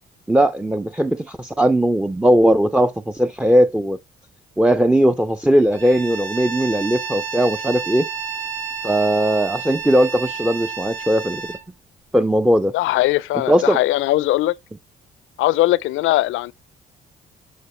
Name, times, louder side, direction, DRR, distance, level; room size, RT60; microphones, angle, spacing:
voice 1, 0.3-4.0 4.6-8.1 8.8-11.4 12.1-12.7 13.5-13.8, right 1 dB, 5° right, 0.4 m, -18 dB
Bowed string instrument, 5.7-11.6, right 6 dB, 70° right, 1.5 m, -30 dB
voice 2, 12.7-14.6 15.4-16.5, left 16 dB, 80° left, 0.4 m, -19 dB
9.4 x 4.9 x 3.2 m
cardioid pair, 90°, 20 cm